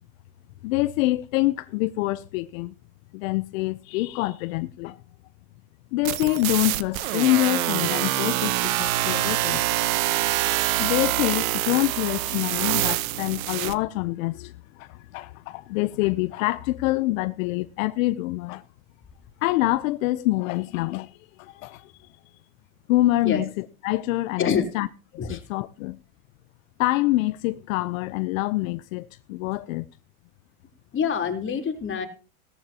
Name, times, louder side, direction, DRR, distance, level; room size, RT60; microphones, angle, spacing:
voice 1, 0.6-2.7 3.1-5.0 5.9-9.7 10.8-18.6 19.4-21.1 21.4-21.9 22.9-24.9 25.3-26.0 26.8-29.8, left 18 dB, 70° left, 0.8 m, -26 dB
sound 1, 6.0-13.7, right 16 dB, 70° right, 1.2 m, -25 dB
voice 2, 24.4-24.7 25.2-25.4 30.9-32.1, left 7 dB, 30° left, 3.6 m, -26 dB
18.0 x 14.0 x 2.9 m
supercardioid pair, 110°, 42 cm